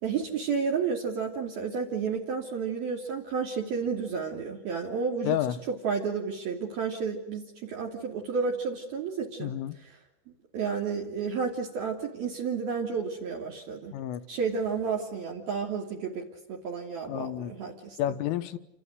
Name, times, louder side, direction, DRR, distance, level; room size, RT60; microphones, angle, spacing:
voice 1, 0.0-5.4 5.7-9.5 10.5-13.9 14.3-18.2, right 5 dB, 55° right, 4.3 m, -31 dB
voice 2, 5.2-5.6 9.4-9.8 13.9-14.3 17.1-17.6 18.0-18.6, left 12 dB, 80° left, 3.7 m, -30 dB
29.5 x 26.5 x 6.6 m
omnidirectional pair, 5.8 m